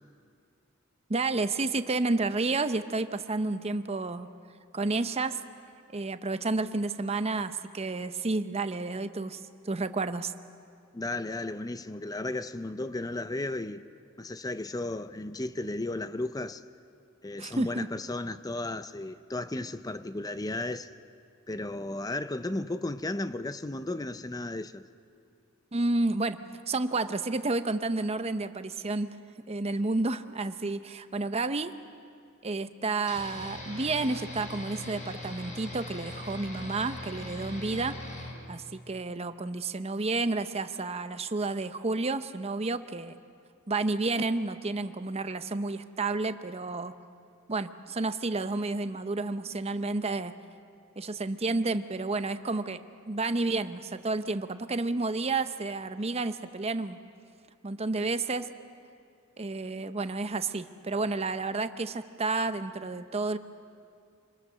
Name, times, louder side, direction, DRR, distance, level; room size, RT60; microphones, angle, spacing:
voice 1, 1.1-4.3 4.7-5.4 5.9-10.3 17.4-17.9 25.7-26.4 26.7-29.2 29.5-31.7 32.4-38.0 38.5-43.2 43.7-46.9 47.5-50.3 51.0-52.8 53.1-57.0 57.6-58.5 59.4-63.4, right 3 dB, 30° right, 0.7 m, -30 dB
voice 2, 10.9-13.8 14.2-16.6 17.2-20.9 21.5-24.8, left 2 dB, 20° left, 0.6 m, -34 dB
sound 1, 33.1-38.3, left 1 dB, 35° left, 4.2 m, -40 dB
26.5 x 22.0 x 6.7 m
head